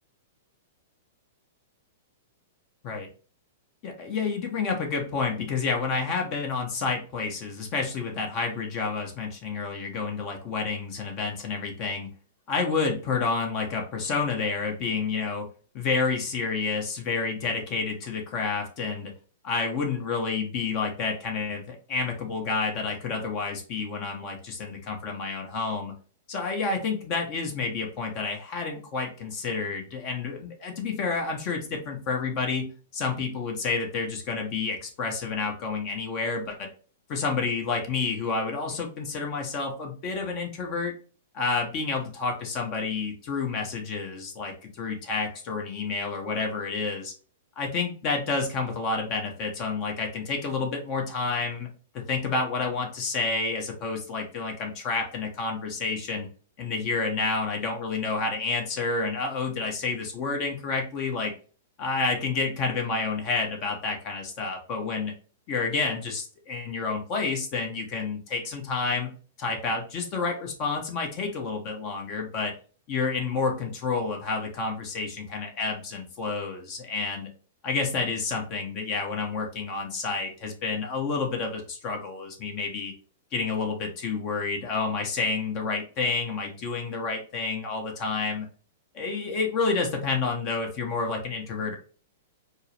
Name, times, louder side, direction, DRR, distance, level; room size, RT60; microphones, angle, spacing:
voice 1, 3.8-12.1 12.5-15.5 15.7-19.1 19.4-25.9 26.3-36.7 37.1-40.9 41.3-47.1 47.6-51.7 51.9-56.3 56.6-61.3 61.8-65.1 65.5-69.1 69.4-72.5 72.9-77.3 77.6-82.9 83.3-88.5 88.9-91.8, left 4 dB, 40° left, 2 dB, 0.8 m, -29 dB
4.5 x 2.0 x 3.1 m, 0.39 s
figure-of-eight pair, 105°, 0 cm